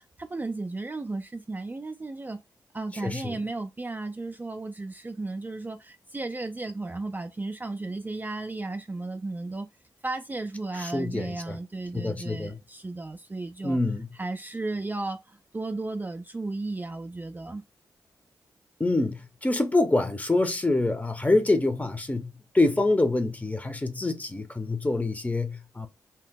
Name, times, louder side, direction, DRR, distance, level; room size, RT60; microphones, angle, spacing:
voice 1, 0.0-2.4 2.7-9.7 10.0-13.8 14.2-17.6, right 2 dB, 25° right, 0.4 m, -34 dB
voice 2, 3.0-3.3 10.8-11.6 11.9-12.6 13.6-14.1 18.8-22.3 22.5-25.9, left 2 dB, 20° left, 0.7 m, -26 dB
2.9 x 2.0 x 3.5 m
supercardioid pair, 45°, 8 cm